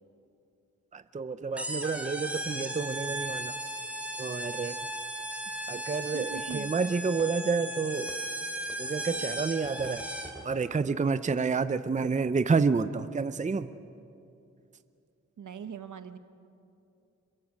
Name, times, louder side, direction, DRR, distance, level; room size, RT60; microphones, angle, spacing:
voice 1, 0.9-3.5 4.2-4.8 5.7-8.1 8.8-10.1 10.4-13.7, right 4 dB, 25° right, 12 dB, 0.6 m, -29 dB
sound 1, 1.6-10.5, right 1 dB, 5° right, 2.7 m, -36 dB
voice 2, 6.1-6.7 15.4-16.2, right 6 dB, 75° right, 10 dB, 1.1 m, -41 dB
27.5 x 22.0 x 6.4 m, 2.6 s
wide cardioid pair, 100°, 31 cm